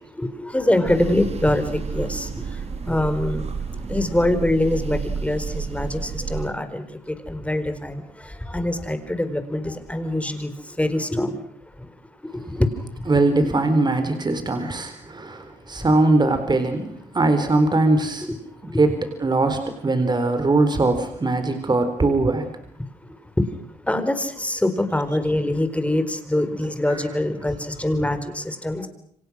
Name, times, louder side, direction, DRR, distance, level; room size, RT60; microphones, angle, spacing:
voice 1, 0.2-2.3 2.9-3.5 3.9-8.0 8.5-10.5 10.8-11.4 12.3-12.7 18.7-18.8 23.4-23.5 23.9-28.9, left 1 dB, 10° left, 9 dB, 4.7 m, -24 dB
sound 1, 0.8-6.5, right 5 dB, 45° right, 3.8 m, -31 dB
voice 2, 13.1-18.3 18.8-22.5 26.9-27.0, right 2 dB, 30° right, 8 dB, 4.2 m, -21 dB
29.5 x 25.0 x 6.4 m, 0.67 s
supercardioid pair, 65°, 15 cm